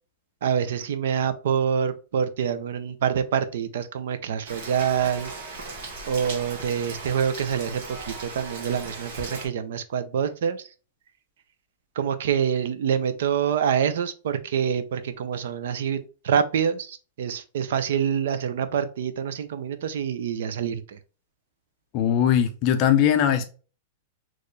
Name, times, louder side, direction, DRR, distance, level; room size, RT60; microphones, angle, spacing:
voice 1, 0.4-5.3 6.1-10.7 12.0-21.0, right 8 dB, 65° right, 0.6 m, -26 dB
Rain, 4.5-9.5, right 3 dB, 45° right, 1.3 m, -37 dB
voice 2, 21.9-23.4, left 9 dB, 30° left, 0.5 m, -20 dB
4.4 x 3.0 x 3.2 m
supercardioid pair, 180°, 0 cm